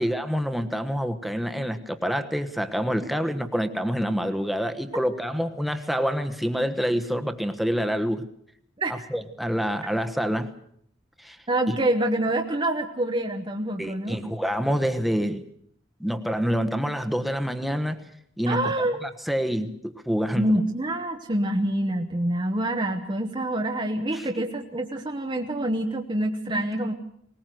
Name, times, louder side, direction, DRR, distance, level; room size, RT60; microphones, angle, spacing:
voice 1, 0.0-8.3 8.9-10.5 11.2-11.4 11.7-11.8 13.8-15.4 16.0-18.0 18.4-18.7 19.0-20.5 24.1-24.2 26.5-26.9, equal, ahead, 7 dB, 1.3 m, -27 dB
voice 2, 11.5-14.2 18.5-19.0 20.3-26.9, right 1 dB, 25° right, 3 dB, 1.1 m, -26 dB
20.0 x 20.0 x 7.8 m, 0.67 s
head